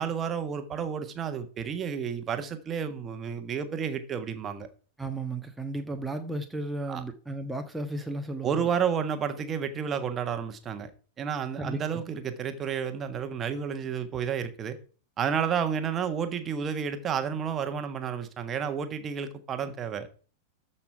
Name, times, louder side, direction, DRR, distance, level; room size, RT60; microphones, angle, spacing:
voice 1, 0.0-4.7 6.9-7.0 8.4-10.9 11.2-14.8 15.2-20.1, right 7 dB, 25° right, 1.5 m, -31 dB
voice 2, 5.0-8.7 11.6-12.0, right 2 dB, 5° right, 1.3 m, -34 dB
13.5 x 5.8 x 4.6 m
figure-of-eight pair, 90°, 0 cm